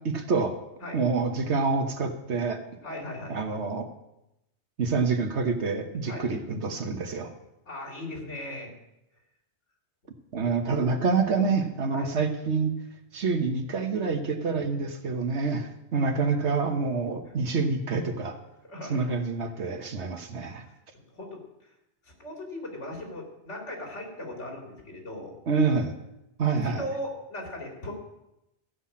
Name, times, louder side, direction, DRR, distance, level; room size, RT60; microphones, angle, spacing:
voice 1, 0.0-0.6 0.9-2.6 3.3-3.9 4.8-7.3 10.3-12.7 13.1-18.4 18.9-20.6 25.5-26.0 26.4-26.9, right 4 dB, 70° right, 6 dB, 1.5 m, -27 dB
voice 2, 2.8-3.4 6.1-6.3 7.7-8.7 11.9-12.1 17.2-17.3 18.6-19.1 19.6-19.9 20.9-21.7 22.0-25.4 26.5-27.9, left 1 dB, 80° left, 0 dB, 3.2 m, -38 dB
14.0 x 5.8 x 8.5 m, 0.88 s
omnidirectional pair, 1.2 m